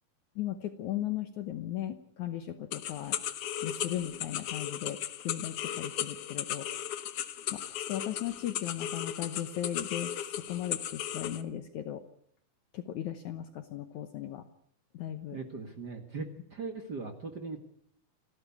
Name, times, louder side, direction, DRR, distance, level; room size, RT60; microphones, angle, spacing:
voice 1, 0.4-3.2 3.6-7.0 7.5-12.0 12.7-14.5 14.9-15.4, left 11 dB, 65° left, 9 dB, 2.1 m, -37 dB
sound 1, 2.7-11.4, left 10 dB, 90° left, 1.3 m, -36 dB
voice 2, 15.3-17.6, right 4 dB, 45° right, 6 dB, 1.4 m, -39 dB
28.5 x 13.0 x 8.4 m, 0.71 s
omnidirectional pair, 4.2 m